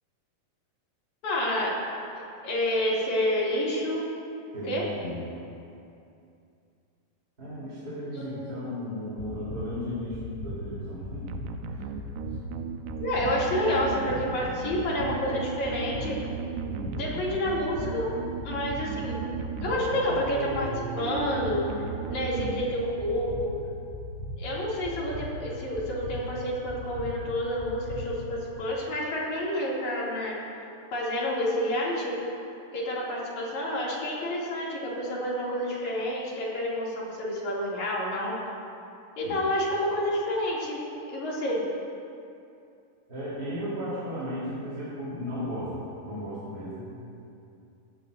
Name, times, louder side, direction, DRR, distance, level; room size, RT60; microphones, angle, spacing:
voice 1, 1.2-1.7 2.4-4.0 4.7-4.8 8.1-8.6 13.0-16.2 16.9-18.1 18.4-19.2 19.6-21.6 22.1-23.6 24.4-30.3 30.9-32.1 32.7-38.4 39.2-41.6, left 1 dB, 60° left, -6 dB, 4.0 m, -29 dB
voice 2, 4.5-5.3 7.4-11.3 11.7-11.9 16.6-17.0 39.2-39.3 43.1-46.9, equal, 25° right, -10 dB, 4.0 m, -35 dB
sound 1, 9.2-28.5, left 1 dB, 15° left, 3.0 m, -39 dB
sound 2, 11.3-23.1, right 8 dB, 80° right, 1.9 m, -37 dB
18.5 x 15.0 x 2.7 m, 2.6 s
omnidirectional pair, 3.8 m